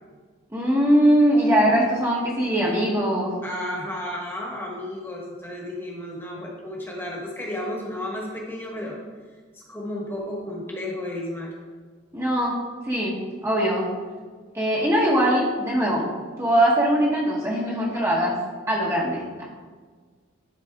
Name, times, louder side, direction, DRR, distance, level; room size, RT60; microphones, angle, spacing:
voice 1, 0.5-3.3 12.1-12.5 12.8-13.9 14.5-16.1 16.4-18.4 18.7-19.4, right 1 dB, 15° right, -5 dB, 1.1 m, -21 dB
voice 2, 3.4-9.0 9.5-11.5, left 1 dB, 10° left, -3 dB, 1.3 m, -33 dB
11.0 x 4.1 x 3.5 m, 1.5 s
head